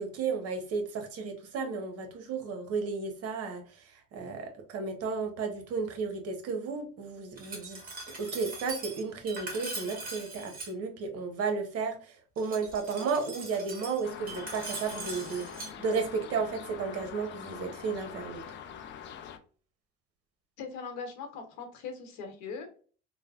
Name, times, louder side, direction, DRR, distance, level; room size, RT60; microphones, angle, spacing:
voice 1, 0.0-7.8 8.2-18.4, right 4 dB, 55° right, 0.9 m, -33 dB
Glass, 7.4-10.7 12.4-15.7, right 3 dB, 30° right, 1.4 m, -41 dB
sound 1, 14.0-19.4, left 8 dB, 40° left, 0.4 m, -44 dB
voice 2, 20.6-22.8, left 5 dB, 70° left, 1.0 m, -40 dB
3.3 x 2.1 x 2.3 m
supercardioid pair, 115°, 30 cm